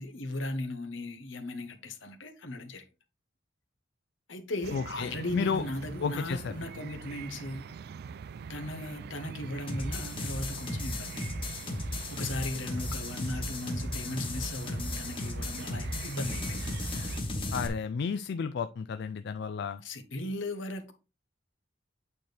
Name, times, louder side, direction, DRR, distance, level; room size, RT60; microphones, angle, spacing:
voice 1, 0.0-2.8 4.3-7.6 8.5-11.3 12.1-16.8 19.8-20.9, left 2 dB, 80° left, 1.2 m, -37 dB
sound 1, 4.6-17.2, right 6 dB, 55° right, 0.3 m, -43 dB
voice 2, 4.7-5.6 6.0-6.5 17.5-19.8, left 6 dB, 60° left, 0.4 m, -32 dB
sound 2, 9.7-17.7, left 1 dB, 30° left, 1.3 m, -35 dB
8.6 x 4.4 x 3.3 m
head